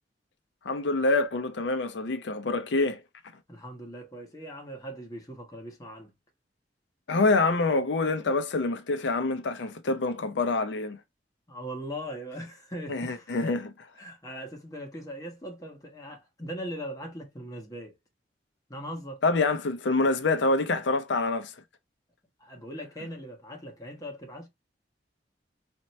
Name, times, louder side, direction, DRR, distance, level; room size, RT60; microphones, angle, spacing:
voice 1, 0.6-3.0 7.1-11.0 12.9-13.7 19.2-21.5, left 3 dB, 80° left, 0.6 m, -26 dB
voice 2, 3.5-6.1 11.5-13.6 13.9-18.0 18.7-19.2 22.4-24.5, equal, 20° left, 1.2 m, -40 dB
4.3 x 2.8 x 3.1 m
head